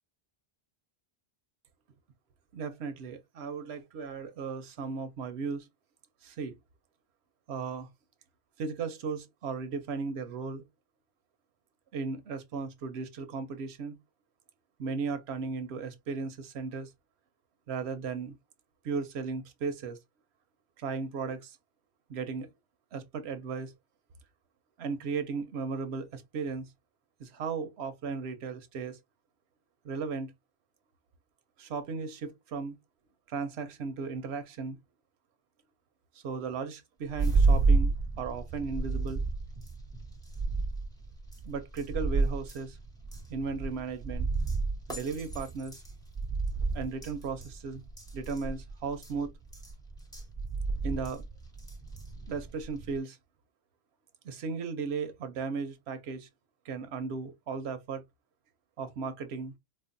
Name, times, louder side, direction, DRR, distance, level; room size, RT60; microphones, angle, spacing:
voice 1, 2.5-5.7 6.2-6.5 7.5-7.9 8.6-10.6 11.9-14.0 14.8-16.9 17.7-18.4 18.8-20.0 20.8-21.6 22.1-22.5 22.9-23.7 24.8-26.7 27.2-29.0 29.8-30.3 31.6-32.8 33.3-34.8 36.1-39.2 41.4-42.8 43.3-44.3 44.9-45.8 46.7-47.8 48.1-49.3 50.8-51.2 52.3-53.2 54.2-56.3 56.6-58.0 58.8-59.5, right 5 dB, 90° right, 0.9 m, -36 dB
sound 1, 37.1-53.0, right 3 dB, 5° left, 0.9 m, -31 dB
4.3 x 2.1 x 2.5 m
omnidirectional pair, 1.1 m